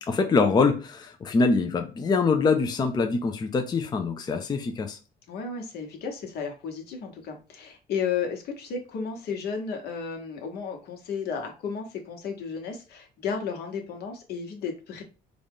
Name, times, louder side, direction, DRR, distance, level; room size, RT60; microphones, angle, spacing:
voice 1, 0.0-5.0, left 4 dB, 25° left, 0.4 m, -24 dB
voice 2, 5.3-15.0, left 6 dB, 70° left, 1.1 m, -33 dB
3.9 x 2.3 x 3.5 m
cardioid pair, 110°, 17 cm